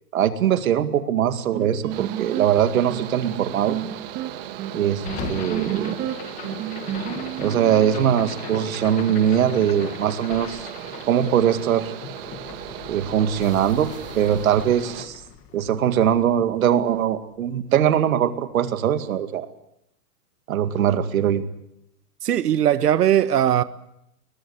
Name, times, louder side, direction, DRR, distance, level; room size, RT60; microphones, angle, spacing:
voice 1, 0.1-3.8 4.7-6.0 7.4-10.7 11.1-11.9 12.9-13.9 14.2-15.2 15.5-19.5 20.5-21.4, right 9 dB, 60° right, 2.3 m, -21 dB
sound 1, 1.5-8.5, right 12 dB, 20° right, 1.8 m, -31 dB
Mechanical fan, 1.9-15.1, right 13 dB, 35° right, 1.5 m, -37 dB
sound 2, 5.0-17.2, left 8 dB, 15° left, 1.4 m, -39 dB
voice 2, 22.2-23.6, right 10 dB, 75° right, 1.5 m, -19 dB
22.0 x 22.0 x 8.1 m
hypercardioid pair, 165°, 47 cm